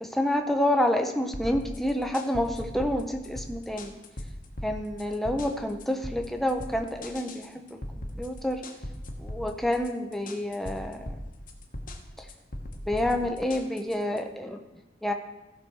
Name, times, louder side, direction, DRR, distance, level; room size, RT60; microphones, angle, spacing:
voice 1, 0.0-3.9 4.6-8.6 9.2-11.1 12.9-14.6 15.0-15.1, left 1 dB, ahead, 4 dB, 0.7 m, -28 dB
sound 1, 1.3-14.2, left 1 dB, 45° left, 1.2 m, -39 dB
15.0 x 6.1 x 4.6 m, 1.1 s
head